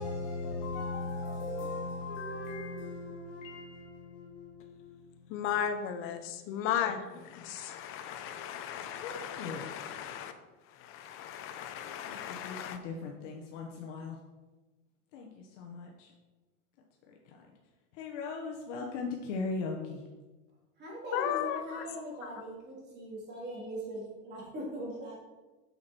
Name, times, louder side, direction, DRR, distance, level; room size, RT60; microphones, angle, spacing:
voice 1, 0.0-5.4 9.0-10.0 11.8-14.2 15.1-16.1 17.1-17.5 17.9-20.0, left 3 dB, 65° left, 0 dB, 1.3 m, -39 dB
voice 2, 5.3-10.3 10.7-12.8 21.1-21.8 22.2-22.3, left 9 dB, 35° left, 7 dB, 0.8 m, -36 dB
voice 3, 20.8-25.2, right 1 dB, 25° right, -4 dB, 3.1 m, -40 dB
8.4 x 6.3 x 4.4 m, 1.2 s
supercardioid pair, 160°, 39 cm